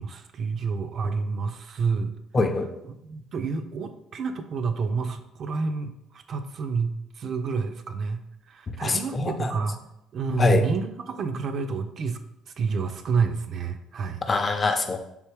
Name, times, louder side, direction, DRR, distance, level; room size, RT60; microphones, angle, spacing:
voice 1, 0.0-2.1 2.8-9.8 10.1-12.2 12.6-14.2, right 5 dB, 55° right, 7 dB, 0.4 m, -29 dB
voice 2, 2.3-2.7 8.8-9.5 10.4-10.6 14.3-15.0, left 3 dB, 35° left, 6 dB, 0.5 m, -23 dB
3.3 x 2.6 x 3.3 m, 0.81 s
supercardioid pair, 65°, 0 cm